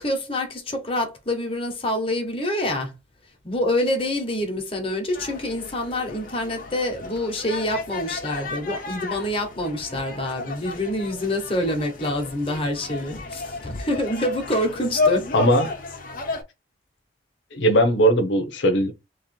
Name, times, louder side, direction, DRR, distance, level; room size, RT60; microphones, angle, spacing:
voice 1, 0.0-2.9 3.4-15.3, left 1 dB, 30° left, 1.2 m, -26 dB
sound 1, 5.1-16.4, left 3 dB, 50° left, 0.8 m, -32 dB
voice 2, 15.3-15.7 17.5-18.9, right 1 dB, 80° left, 0.7 m, -19 dB
3.1 x 2.9 x 4.2 m
head